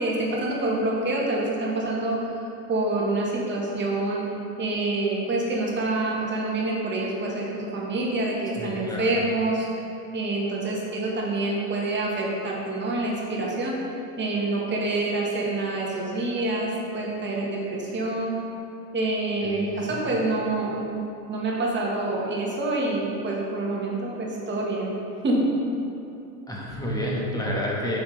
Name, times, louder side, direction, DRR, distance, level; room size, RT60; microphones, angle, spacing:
voice 1, 0.0-4.2 4.6-9.7 10.1-13.8 14.2-18.3 18.9-21.0 21.3-24.9 25.2-25.4, right 2 dB, 25° right, -3 dB, 1.4 m, -27 dB
voice 2, 8.6-9.2 19.4-20.1 26.5-28.0, equal, 10° left, -4 dB, 1.3 m, -30 dB
8.1 x 6.0 x 3.3 m, 2.7 s
supercardioid pair, 120°, 47 cm